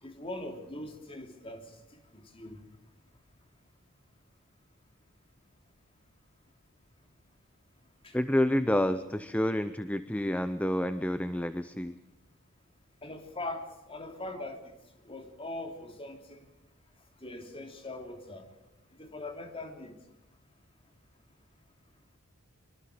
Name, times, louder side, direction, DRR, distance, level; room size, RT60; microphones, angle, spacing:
voice 1, 0.0-1.7 2.1-2.6 8.0-8.2 13.0-14.7 15.0-16.5 17.2-18.5 19.0-19.9, left 2 dB, 25° left, 4 dB, 3.1 m, -41 dB
voice 2, 8.1-12.0, left 1 dB, 5° left, 11 dB, 0.6 m, -29 dB
24.5 x 23.5 x 5.1 m, 0.95 s
head